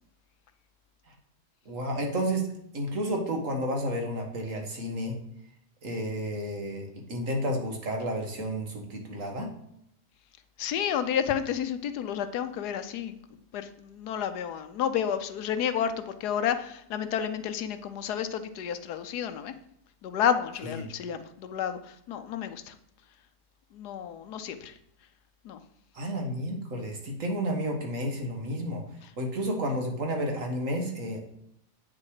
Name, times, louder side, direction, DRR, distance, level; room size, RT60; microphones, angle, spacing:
voice 1, 1.7-2.5 2.7-5.1 5.8-9.5 20.6-20.8 25.9-28.8 29.2-31.2, equal, 50° right, 3 dB, 1.9 m, -31 dB
voice 2, 10.6-13.1 13.5-19.5 20.0-22.7 23.7-24.7 25.4-25.6, left 8 dB, 75° left, 11 dB, 1.2 m, -31 dB
8.4 x 6.3 x 4.9 m, 0.73 s
omnidirectional pair, 1.8 m